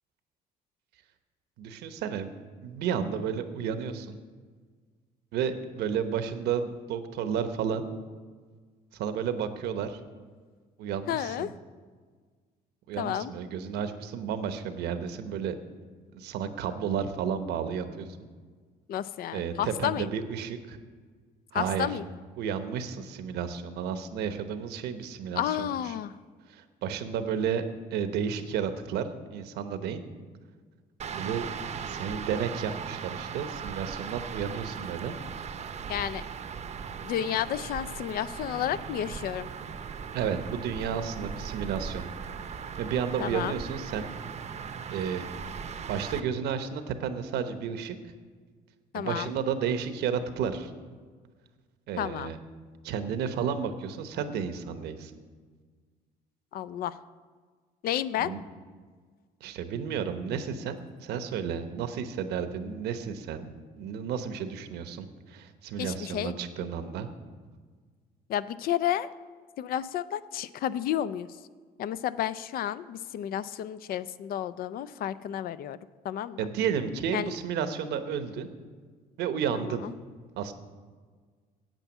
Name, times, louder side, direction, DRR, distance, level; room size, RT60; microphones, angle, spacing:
voice 1, 1.6-2.3 2.6-4.2 5.3-7.9 8.9-10.0 10.8-11.5 12.9-15.5 16.1-18.1 19.3-20.8 21.5-21.9 22.4-25.7 26.5-27.6 27.9-30.0 31.1-31.5 31.9-35.1 40.1-42.0 42.5-44.1 44.9-45.3 45.6-47.9 48.9-50.7 51.9-52.4 52.8-55.1 58.2-58.4 59.4-67.1 76.4-78.5 79.2-79.9 80.4-80.5, right 7 dB, 80° right, 9 dB, 1.0 m, -32 dB
voice 2, 11.1-11.5 13.0-13.3 18.9-20.1 21.5-22.1 25.3-26.2 35.9-36.2 37.0-39.5 43.2-43.6 48.9-49.4 52.0-52.3 56.5-57.0 57.8-58.3 65.8-66.4 68.3-69.1 69.6-71.4 71.8-75.8 76.0-76.4 77.1-77.3 79.5-79.9, left 11 dB, 60° left, 16 dB, 0.5 m, -31 dB
sound 1, 31.0-46.2, right 6 dB, 40° right, 0.7 m, -38 dB
9.1 x 8.4 x 7.2 m, 1.5 s
cardioid pair, 110°, 17 cm